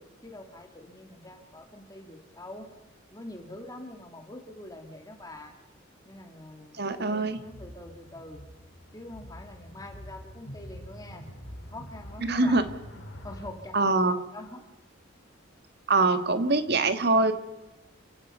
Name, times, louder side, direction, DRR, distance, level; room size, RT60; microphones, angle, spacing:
voice 1, 0.0-2.7 3.1-5.6 6.0-8.4 8.9-11.3 11.5-12.6 13.2-14.6, left 1 dB, 20° left, 4 dB, 2.3 m, -45 dB
voice 2, 6.8-7.4 12.2-12.6 13.7-14.2 15.9-17.3, right 3 dB, 55° right, 9 dB, 1.6 m, -23 dB
sound 1, 7.3-13.5, equal, 75° left, 3.7 m, -45 dB
30.0 x 16.5 x 5.5 m, 1.1 s
head